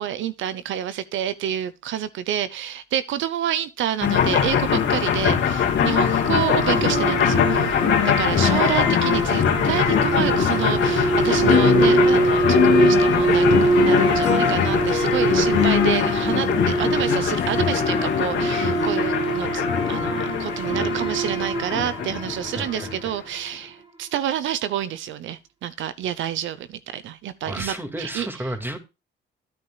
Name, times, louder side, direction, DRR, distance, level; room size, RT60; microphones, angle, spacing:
voice 1, 0.0-28.3, right 10 dB, 75° right, 0.7 m, -28 dB
sound 1, 4.0-23.2, left 8 dB, 70° left, 2.4 m, -22 dB
sound 2, 6.5-23.1, right 3 dB, 25° right, 3.6 m, -24 dB
voice 2, 8.4-8.9 22.5-23.2 27.5-28.8, right 1 dB, 10° right, 2.1 m, -32 dB
Harp, 10.5-21.6, left 4 dB, 35° left, 1.5 m, -34 dB
12.0 x 9.8 x 2.3 m
cardioid pair, 90°, 20 cm